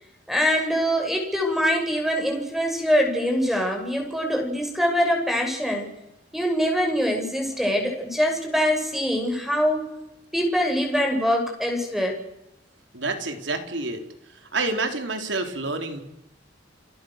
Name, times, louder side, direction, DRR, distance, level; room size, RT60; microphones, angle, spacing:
voice 1, 0.3-5.9 6.3-9.8 10.3-12.2, equal, ahead, 2 dB, 6.7 m, -23 dB
voice 2, 12.9-14.0 14.5-16.0, right 3 dB, 80° right, 5 dB, 4.0 m, -28 dB
29.0 x 23.5 x 6.7 m, 0.89 s
head